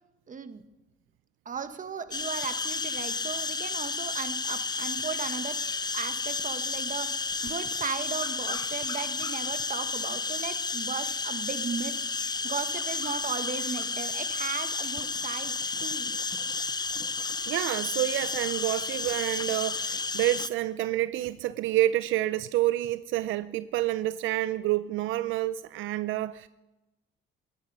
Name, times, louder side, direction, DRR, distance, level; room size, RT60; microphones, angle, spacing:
voice 1, 0.3-0.6 1.4-5.6 5.9-7.1 7.4-12.0 12.4-15.5 15.8-16.1, right 6 dB, 40° right, 1.3 m, -36 dB
sound 1, 2.1-20.5, left 4 dB, 20° left, 0.5 m, -32 dB
voice 2, 17.5-26.5, right 15 dB, 85° right, 0.4 m, -28 dB
16.5 x 12.0 x 5.4 m
cardioid pair, 90°, 20 cm